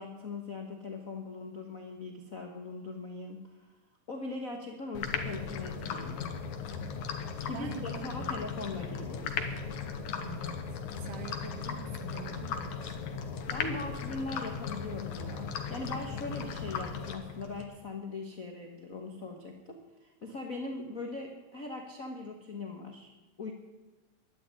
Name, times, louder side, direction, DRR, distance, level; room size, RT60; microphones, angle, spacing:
voice 1, 0.0-3.7 4.1-6.3 7.4-9.4 9.7-9.8 13.5-23.1 23.4-23.5, left 3 dB, 45° left, 2 dB, 1.1 m, -40 dB
sound 1, 4.9-17.6, left 6 dB, 75° left, 2.6 m, -37 dB
voice 2, 7.4-8.6 10.2-13.0 16.3-16.4, right 7 dB, 90° right, 8 dB, 2.9 m, -46 dB
11.5 x 10.0 x 9.7 m, 1.2 s
omnidirectional pair, 3.6 m